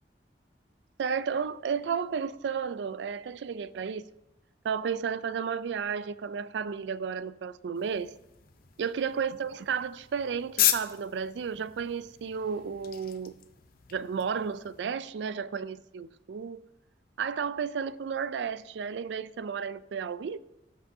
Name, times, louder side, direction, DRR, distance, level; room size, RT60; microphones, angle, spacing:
voice 1, 1.0-4.0 4.6-8.1 8.8-13.3 13.9-16.6 17.2-20.4, right 6 dB, 80° right, 0.4 m, -33 dB
sound 1, 7.8-14.8, left 11 dB, 55° left, 0.6 m, -35 dB
17.0 x 6.0 x 2.7 m
head